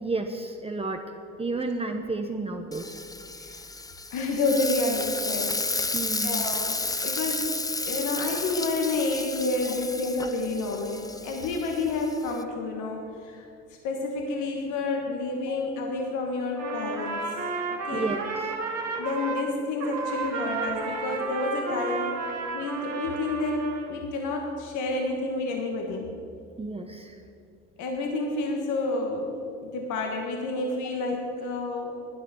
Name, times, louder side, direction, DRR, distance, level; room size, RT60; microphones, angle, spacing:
voice 1, 0.0-1.0 1.4-3.0 5.9-6.5 15.5-15.6 17.9-18.2 26.6-27.2, right 3 dB, 20° right, 4 dB, 0.9 m, -31 dB
Frying (food), 2.7-12.4, left 3 dB, 10° left, 0.6 m, -32 dB
voice 2, 3.3-3.6 4.1-5.9 6.2-7.5 7.8-17.2 17.7-18.1 19.0-22.2 22.5-26.1 26.8-26.9 27.8-29.3 29.6-31.9, left 3 dB, 75° left, 1 dB, 1.5 m, -30 dB
Trumpet, 16.5-19.5 19.8-23.9, right 4 dB, 55° right, 2.2 m, -32 dB
11.0 x 9.7 x 6.3 m, 2.5 s
supercardioid pair, 75°, 30 cm